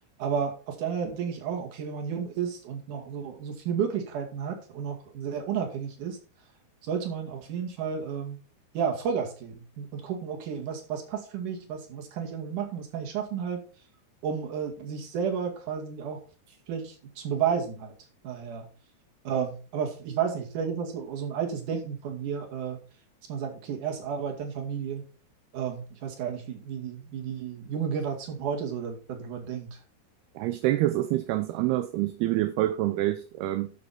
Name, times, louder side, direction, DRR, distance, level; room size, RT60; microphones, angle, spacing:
voice 1, 0.2-6.2 6.8-8.4 8.7-13.6 14.2-16.2 16.7-17.9 18.2-18.7 19.3-22.8 23.3-25.0 25.5-29.8, right 7 dB, 55° right, 3.4 m, -32 dB
voice 2, 30.4-33.7, right 15 dB, 80° right, 2.6 m, -26 dB
12.5 x 6.8 x 4.3 m
omnidirectional pair, 4.8 m